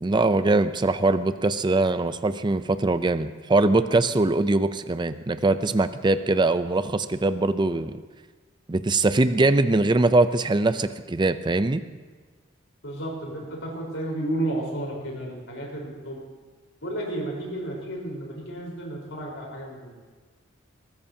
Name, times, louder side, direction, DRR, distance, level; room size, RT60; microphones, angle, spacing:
voice 1, 0.0-8.0 8.7-11.8, right 2 dB, 25° right, 11 dB, 0.5 m, -22 dB
voice 2, 12.8-16.2 16.8-19.9, right 1 dB, 90° left, -2 dB, 4.2 m, -32 dB
21.5 x 14.0 x 2.8 m, 1.4 s
head